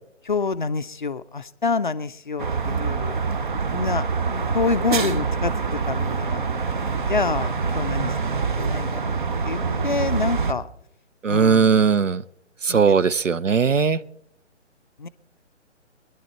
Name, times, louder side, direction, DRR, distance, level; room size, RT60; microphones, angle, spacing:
voice 1, 0.2-3.2 3.7-4.0 4.3-6.4 7.1-9.0 9.4-10.7 11.3-11.8 12.7-13.2 15.0-15.1, left 4 dB, 40° left, 12 dB, 0.5 m, -27 dB
sound 1, 2.4-10.5, right 5 dB, 40° right, 0.9 m, -25 dB
voice 2, 11.2-12.2 12.6-14.0, right 6 dB, 85° right, 17 dB, 0.6 m, -18 dB
21.0 x 11.0 x 4.3 m, 0.72 s
figure-of-eight pair, 140°, 37 cm